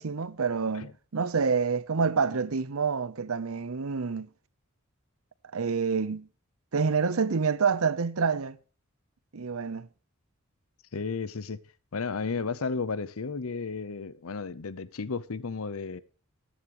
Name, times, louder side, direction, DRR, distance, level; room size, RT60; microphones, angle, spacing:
voice 1, 0.0-4.3 5.5-6.3 6.7-8.6 9.3-9.9, right 5 dB, 80° right, 0.7 m, -27 dB
voice 2, 10.9-11.6 11.9-16.0, left 4 dB, 80° left, 0.7 m, -33 dB
14.5 x 10.0 x 3.0 m
head